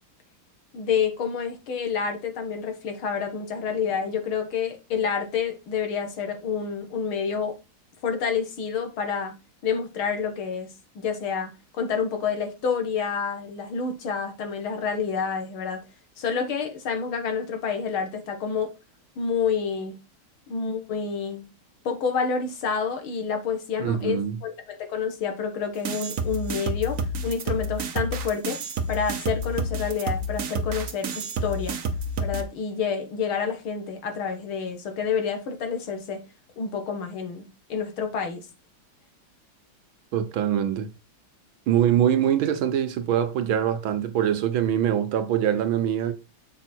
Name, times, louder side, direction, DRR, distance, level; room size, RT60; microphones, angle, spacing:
voice 1, 0.7-7.6 8.0-9.3 9.6-10.7 11.0-11.5 11.8-15.8 16.2-18.7 19.2-20.0 20.5-21.5 21.9-28.6 28.9-31.8 32.2-36.2 36.6-38.5, left 6 dB, 90° left, 2.4 m, -28 dB
voice 2, 23.8-24.4 40.1-40.9 41.7-46.1, right 10 dB, 80° right, 1.8 m, -23 dB
sound 1, 25.8-32.4, right 1 dB, 50° right, 1.1 m, -29 dB
7.1 x 5.3 x 4.5 m
omnidirectional pair, 2.2 m